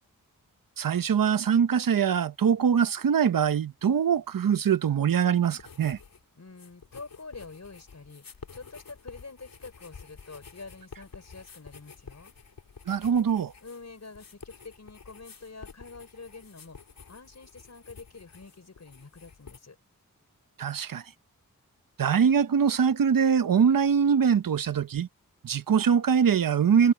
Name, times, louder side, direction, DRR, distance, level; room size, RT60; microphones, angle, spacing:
voice 1, 0.8-6.0 12.9-13.5 20.6-21.0 22.0-25.1 25.4-26.9, right 7 dB, 75° right, 0.9 m, -23 dB
sound 1, 5.6-6.2 6.5-19.6, left 5 dB, 80° left, 3.0 m, -50 dB
voice 2, 6.4-8.3 8.5-12.3 13.6-16.8 17.1-19.8, left 4 dB, 50° left, 5.3 m, -46 dB
cardioid pair, 50°, 34 cm